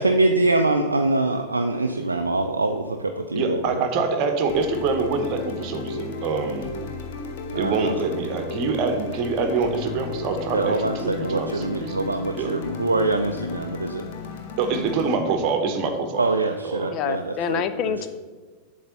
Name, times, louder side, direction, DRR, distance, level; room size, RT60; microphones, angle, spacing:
voice 1, 0.0-3.8 7.5-7.9 10.5-14.0 16.2-17.9, right 2 dB, 80° right, 5 dB, 0.4 m, -24 dB
voice 2, 3.3-6.8 7.6-12.0 12.3-12.5 14.6-16.3 16.6-17.0, right 4 dB, 40° right, 6 dB, 1.0 m, -25 dB
sound 1, 4.5-15.1, left 4 dB, 50° left, 0.9 m, -34 dB
voice 3, 16.9-18.1, left 8 dB, 35° left, 10 dB, 0.4 m, -27 dB
7.9 x 3.4 x 6.5 m, 1.3 s
figure-of-eight pair, 90°, 0 cm